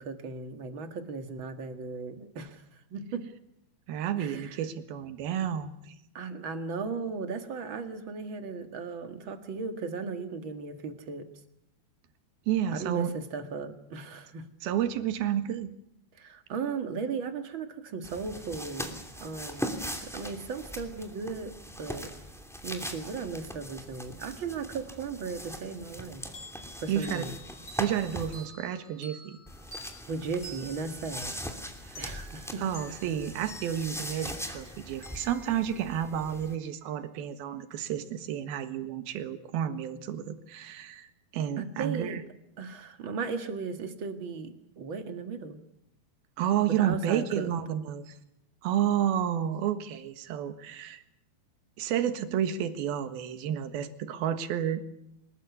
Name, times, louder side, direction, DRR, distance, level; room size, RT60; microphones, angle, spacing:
voice 1, 0.0-2.6 2.9-3.3 4.2-4.6 6.1-11.3 12.7-14.5 16.1-19.7 20.0-22.1 22.6-26.2 26.8-27.3 30.1-31.4 32.0-32.6 41.6-42.2 42.6-45.6 46.8-47.5, right 4 dB, 45° right, 7 dB, 1.8 m, -36 dB
voice 2, 3.9-6.0 12.5-13.1 14.6-15.7 26.9-27.2 27.8-29.4 31.8-32.0 32.6-42.2 46.4-48.1 48.6-51.0 51.8-54.8, right 10 dB, 75° right, 10 dB, 3.3 m, -31 dB
sound 1, 18.0-28.5 29.5-36.5, equal, ahead, 1.7 m, -41 dB
sound 2, 26.3-36.6, left 1 dB, 25° left, 5.6 m, -50 dB
25.5 x 21.0 x 8.4 m, 0.77 s
omnidirectional pair, 4.6 m